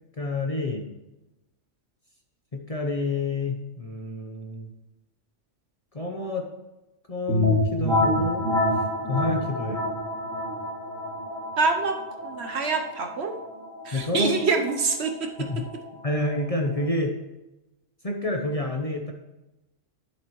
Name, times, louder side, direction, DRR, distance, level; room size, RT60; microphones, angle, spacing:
voice 1, 0.2-0.8 2.5-4.7 5.9-6.5 7.1-8.5 9.1-9.8 13.9-14.3 15.4-15.6 16.0-17.1 18.0-19.1, left 2 dB, 35° left, 1 dB, 0.8 m, -28 dB
sound 1, 7.3-16.8, left 1 dB, 85° right, 1.9 m, -28 dB
voice 2, 11.6-11.9 12.2-13.4 13.8-15.1, right 4 dB, 60° right, 4 dB, 1.1 m, -25 dB
11.0 x 7.2 x 3.1 m, 1.0 s
omnidirectional pair, 1.3 m